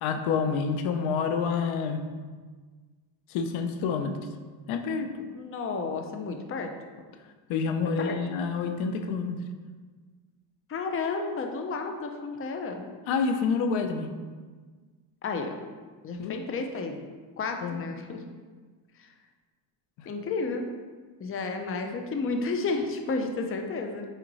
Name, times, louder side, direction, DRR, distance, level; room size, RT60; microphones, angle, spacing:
voice 1, 0.0-2.0 3.3-4.2 4.7-5.1 7.5-9.4 13.1-14.1 16.2-16.4 17.6-17.8 20.0-20.1, left 5 dB, 70° left, 6 dB, 0.8 m, -28 dB
voice 2, 5.3-6.7 8.0-8.2 10.7-12.8 15.2-15.6 16.0-17.1 17.4-18.2 19.0-19.1 20.1-20.6 21.2-24.0, left 4 dB, 25° left, 4 dB, 0.7 m, -32 dB
5.7 x 4.3 x 4.1 m, 1.4 s
cardioid pair, 105°, 50 cm